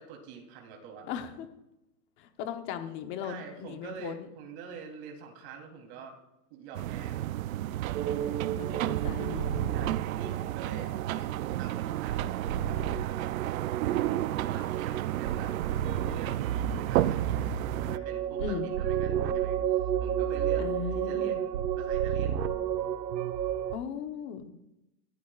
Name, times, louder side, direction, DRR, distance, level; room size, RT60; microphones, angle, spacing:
voice 1, 0.0-1.1 3.2-6.2 6.5-7.2 9.7-13.4 13.8-15.5 16.0-17.5 17.8-19.6 20.0-20.6 20.9-22.4, right 6 dB, 40° right, 1 dB, 3.4 m, -46 dB
voice 2, 1.1-1.5 2.2-4.3 8.2-9.7 18.4-18.7 20.6-21.4 23.7-24.5, left 8 dB, 25° left, 7 dB, 0.9 m, -38 dB
sound 1, 6.7-18.0, right 14 dB, 60° right, 0.5 m, -32 dB
sound 2, 7.9-23.8, right 9 dB, 90° right, 1.2 m, -32 dB
23.0 x 15.5 x 2.4 m, 0.91 s
supercardioid pair, 160°, 49 cm